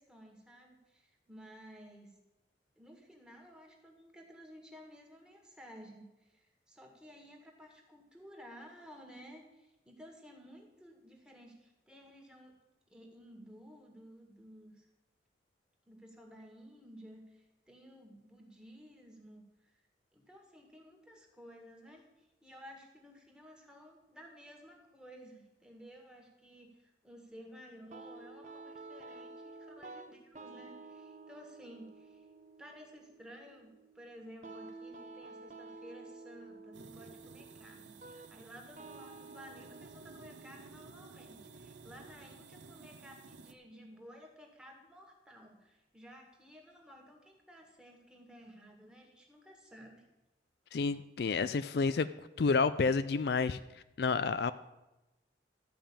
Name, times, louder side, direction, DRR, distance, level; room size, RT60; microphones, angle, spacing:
voice 1, 0.0-2.2 2.8-12.6 12.9-14.9 15.9-19.8 20.1-32.3 32.6-50.1, equal, 5° right, 1 dB, 1.9 m, -54 dB
sound 1, 27.9-42.9, right 3 dB, 40° right, 0.9 m, -52 dB
sound 2, 36.7-43.5, right 4 dB, 80° right, 0.8 m, -54 dB
voice 2, 50.7-52.1 52.4-54.5, left 4 dB, 60° left, 13 dB, 0.4 m, -30 dB
12.5 x 5.5 x 8.6 m, 0.99 s
head